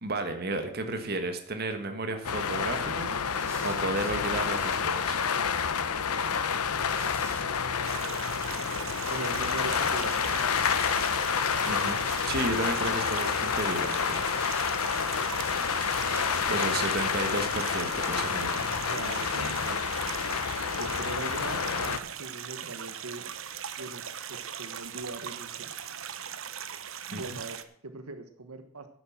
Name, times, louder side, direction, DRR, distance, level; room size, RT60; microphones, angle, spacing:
voice 1, 0.0-3.1 3.6-5.2 11.6-12.0 12.3-14.3 16.5-18.7 27.1-27.4, right 2 dB, 45° right, 7 dB, 1.5 m, -33 dB
sound 1, 2.2-22.0, left 6 dB, 90° left, 0.9 m, -29 dB
sound 2, 2.8-20.3, right 1 dB, 10° right, 2.9 m, -50 dB
sound 3, 7.8-27.6, right 8 dB, 65° right, 0.9 m, -39 dB
voice 2, 9.1-10.4 16.1-16.6 18.9-19.8 20.6-23.3 23.8-24.0 24.3-25.7 27.1-28.9, right 3 dB, 85° right, 8 dB, 1.3 m, -41 dB
11.0 x 8.0 x 7.2 m, 0.62 s
head